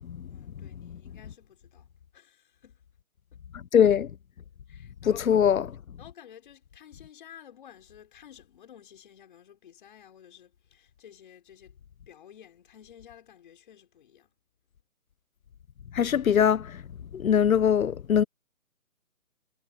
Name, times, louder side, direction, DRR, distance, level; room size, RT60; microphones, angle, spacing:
voice 1, 0.3-2.8 3.3-3.4 4.7-5.4 6.0-11.8 12.1-14.3, left 9 dB, 35° left, 4.9 m, -52 dB
voice 2, 3.7-4.1 5.3-5.6 16.0-16.7 17.1-18.2, left 8 dB, 70° left, 0.8 m, -21 dB
hypercardioid pair, 170°, 44 cm